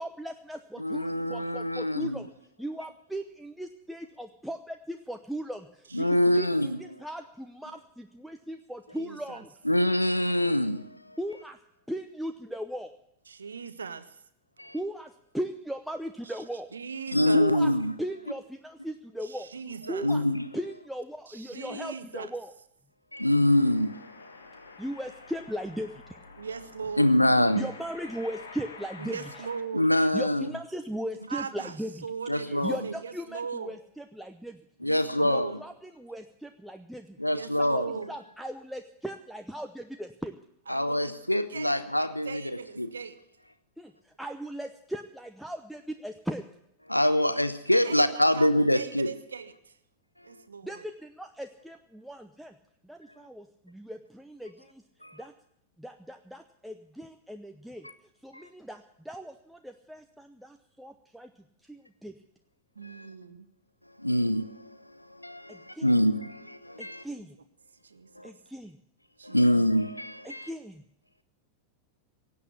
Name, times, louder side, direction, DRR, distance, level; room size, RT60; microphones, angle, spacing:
voice 1, 0.0-2.3 2.6-6.0 6.3-9.5 11.2-11.6 11.9-12.9 14.7-16.7 17.3-17.7 18.0-19.5 19.9-20.2 20.5-22.5 24.8-26.2 27.5-29.5 30.0-32.1 32.4-34.6 35.2-37.2 37.6-40.3 43.8-46.4 50.6-52.6 52.8-54.8 55.1-55.3 55.8-61.3 61.6-62.2 65.5-66.0 66.8-67.4 68.2-68.8 70.2-70.8, right 1 dB, ahead, 0.7 m, -38 dB
voice 2, 0.8-2.2 5.9-6.8 9.6-11.2 14.6-14.7 17.1-17.9 20.0-20.5 23.1-24.8 27.0-27.7 29.7-30.5 32.3-32.8 34.8-35.6 37.2-37.9 40.7-42.5 42.8-42.9 46.9-49.1 55.0-55.2 58.3-58.5 62.8-63.1 64.0-67.0 68.2-68.3 69.2-70.5, left 1 dB, 85° left, 0.8 m, -25 dB
voice 3, 6.0-6.4 8.9-9.4 13.3-14.2 16.7-17.5 19.2-20.1 21.3-22.3 26.4-27.2 29.0-29.9 31.3-31.7 32.0-33.8 34.8-35.6 37.3-38.1 40.7-41.1 41.5-43.2 47.1-47.5 47.8-49.7 50.2-50.8 62.8-63.5 67.8-68.3 69.2-69.8, right 5 dB, 70° right, 0.9 m, -39 dB
sound 1, 23.4-29.6, left 4 dB, 70° left, 2.1 m, -48 dB
17.0 x 8.5 x 8.5 m
figure-of-eight pair, 90°, 0 cm